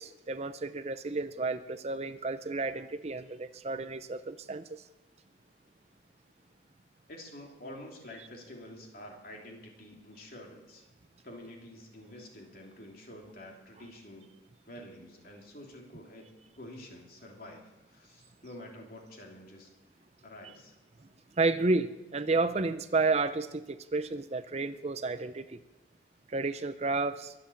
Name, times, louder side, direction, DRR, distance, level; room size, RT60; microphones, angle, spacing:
voice 1, 0.0-4.8 21.4-25.6 26.3-27.3, right 3 dB, 35° right, 0.5 m, -31 dB
voice 2, 7.1-10.8 11.2-14.3 14.6-16.3 16.6-19.7 20.2-20.8, left 1 dB, 50° left, 3.2 m, -48 dB
23.0 x 7.8 x 7.3 m
head